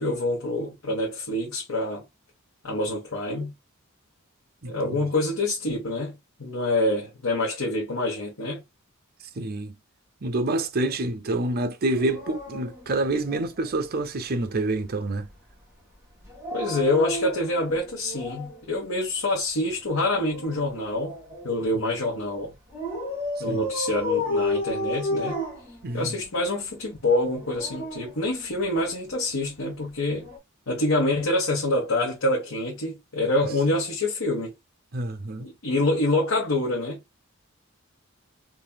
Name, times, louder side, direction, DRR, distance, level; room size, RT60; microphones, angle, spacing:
voice 1, 0.0-2.0 2.6-3.5 4.6-8.6 16.5-21.2 21.4-22.5 23.4-25.4 25.9-30.3 30.7-34.5 35.4-37.2, left 2 dB, 75° left, 1.5 m, -26 dB
voice 2, 4.6-5.0 9.4-9.8 10.2-15.3 23.5-23.7 25.8-26.1 34.9-35.5, right 2 dB, 45° right, 0.7 m, -27 dB
Dog, 11.9-13.8 16.2-18.6 19.9-21.6 22.7-26.3 27.3-28.9 30.2-30.4, left 2 dB, 10° right, 2.7 m, -32 dB
4.2 x 3.3 x 2.3 m
head